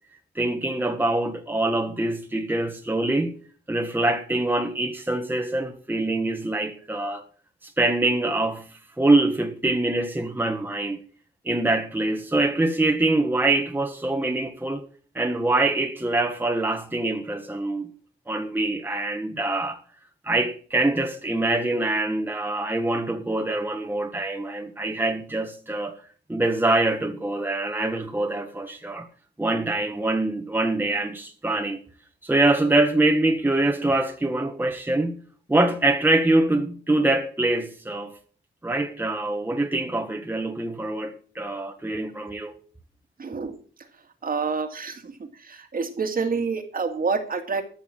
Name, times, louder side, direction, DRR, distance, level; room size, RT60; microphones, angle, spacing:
voice 1, 0.3-3.4 3.7-7.2 7.6-11.0 11.4-14.9 15.1-17.9 18.3-19.8 20.2-25.9 26.3-29.1 29.4-31.8 32.2-35.2 35.5-38.2 38.6-42.6, right 2 dB, 10° right, 1.3 m, -24 dB
voice 2, 43.2-43.5 44.2-45.0 45.5-47.6, right 5 dB, 50° right, 2.0 m, -27 dB
13.5 x 6.2 x 7.4 m
wide cardioid pair, 115°, 19 cm